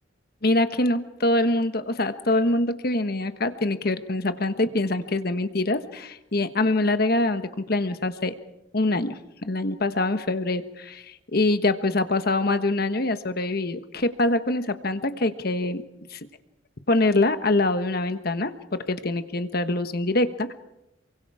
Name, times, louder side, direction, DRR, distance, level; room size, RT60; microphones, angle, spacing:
voice 1, 0.4-8.3 8.7-15.8 16.1-16.2 16.9-20.5, left 2 dB, 50° left, 10 dB, 1.3 m, -24 dB
27.5 x 24.0 x 4.9 m, 0.88 s
head